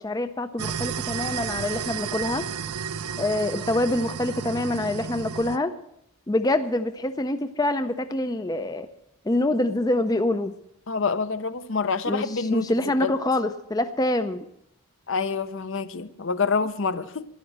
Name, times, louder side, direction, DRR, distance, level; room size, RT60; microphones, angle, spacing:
voice 1, 0.0-2.4 3.2-5.7 6.3-8.9 9.3-10.5 12.1-14.4, left 1 dB, 15° left, 0.5 m, -25 dB
sound 1, 0.6-5.6, right 7 dB, 90° right, 0.5 m, -32 dB
voice 2, 10.9-12.7 13.0-13.1 15.1-17.3, left 5 dB, 55° left, 0.7 m, -27 dB
12.5 x 11.0 x 7.4 m
head